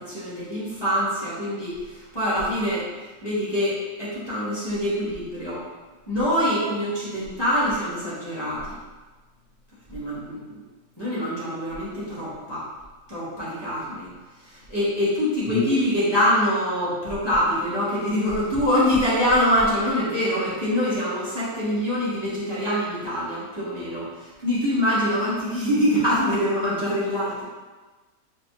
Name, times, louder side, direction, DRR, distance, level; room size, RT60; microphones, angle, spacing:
voice 1, 0.0-2.9 3.2-5.6 6.1-8.8 9.9-10.6 11.0-12.6 13.1-14.1 14.4-27.4, equal, 20° left, -10 dB, 1.0 m, -24 dB
4.5 x 2.0 x 3.1 m, 1.3 s
omnidirectional pair, 1.6 m